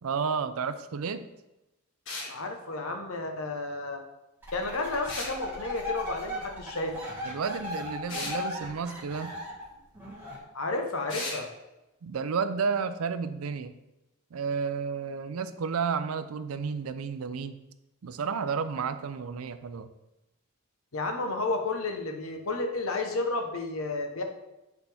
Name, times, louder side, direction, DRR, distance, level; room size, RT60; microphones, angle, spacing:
voice 1, 0.0-1.3 7.2-9.3 12.0-13.8 14.3-17.5 18.0-19.9, right 5 dB, 85° right, 12 dB, 0.5 m, -31 dB
sound 1, 2.1-2.3 5.1-5.4 8.1-8.4 11.1-11.4, left 2 dB, 65° left, 1.7 m, -35 dB
voice 2, 2.3-4.0 4.5-6.9 10.5-11.5 20.9-24.2, left 2 dB, 80° left, 4 dB, 1.0 m, -32 dB
sound 2, 4.4-10.4, left 1 dB, 10° right, 1.7 m, -37 dB
8.3 x 4.1 x 3.4 m, 0.98 s
head